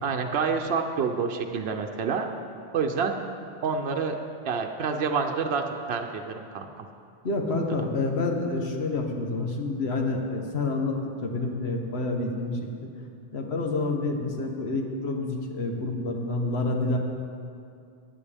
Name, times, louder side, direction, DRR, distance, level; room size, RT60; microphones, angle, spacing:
voice 1, 0.0-2.3 2.7-3.2 3.6-4.2 4.4-6.9, right 5 dB, 75° right, 3 dB, 0.9 m, -28 dB
voice 2, 7.2-12.6 13.3-17.0, left 3 dB, 85° left, 2 dB, 1.4 m, -28 dB
15.5 x 9.5 x 3.4 m, 2.4 s
omnidirectional pair, 1.1 m